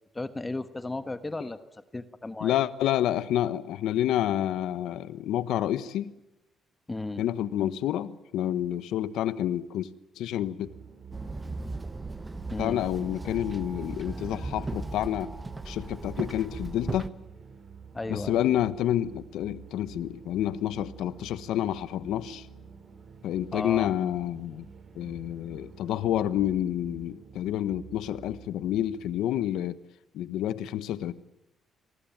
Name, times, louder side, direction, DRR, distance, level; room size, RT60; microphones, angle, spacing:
voice 1, 0.0-1.6 1.9-2.6 6.9-7.2 12.5-12.8 17.9-18.4 23.5-23.9, left 2 dB, 20° left, 11 dB, 1.4 m, -34 dB
voice 2, 2.4-6.1 7.2-9.9 10.2-10.7 12.6-15.3 15.7-17.1 18.1-22.5 23.2-24.6 24.9-29.8 30.1-31.1, left 12 dB, 85° left, 15 dB, 1.2 m, -29 dB
sound 1, 10.6-29.1, right 6 dB, 50° right, 4.0 m, -49 dB
Walk footsteps / Chatter / Hiss, 11.1-17.1, right 2 dB, 20° right, 1.0 m, -37 dB
27.0 x 20.0 x 9.2 m, 0.94 s
cardioid pair, 90°, 0 cm